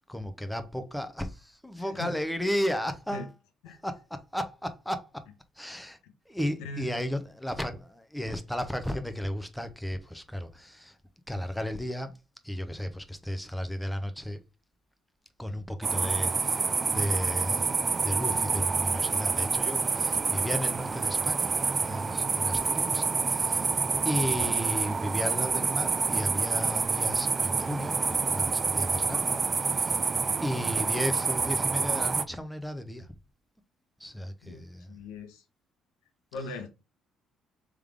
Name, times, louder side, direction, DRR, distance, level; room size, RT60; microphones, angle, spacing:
voice 1, 0.1-3.3 3.8-5.2 5.6-6.0 6.3-11.0 11.3-12.1 12.4-14.4 15.4-21.5 21.8-23.7 24.0-29.3 29.7-30.0 30.4-33.1 34.0-34.9, equal, 5° left, 0.7 m, -34 dB
voice 2, 1.8-2.1 3.1-3.3 3.6-3.8 6.0-6.1 6.6-7.0 34.4-35.4 36.3-36.7, left 2 dB, 85° left, 0.9 m, -40 dB
sound 1, 15.8-32.2, right 4 dB, 35° right, 0.4 m, -28 dB
3.6 x 3.4 x 3.4 m
supercardioid pair, 65°, 0 cm